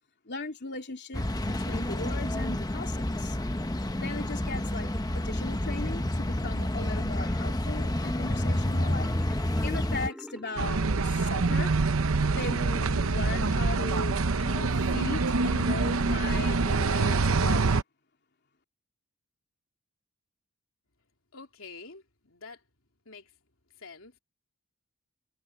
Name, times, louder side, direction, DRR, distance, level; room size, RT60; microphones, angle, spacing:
voice 1, 0.3-3.4 4.0-4.9 5.1-9.4 9.6-11.7 12.3-17.8, left 3 dB, 50° left, 3.1 m, -38 dB
sound 1, 1.1-10.1, left 1 dB, 20° left, 1.0 m, -29 dB
Marimba xylophone, 8.9-11.6, equal, 5° right, 2.5 m, -45 dB
sound 2, 10.6-17.8, right 3 dB, 70° right, 0.8 m, -25 dB
voice 2, 21.3-22.6 23.1-23.3 23.8-24.2, left 4 dB, 70° left, 3.5 m, -47 dB
head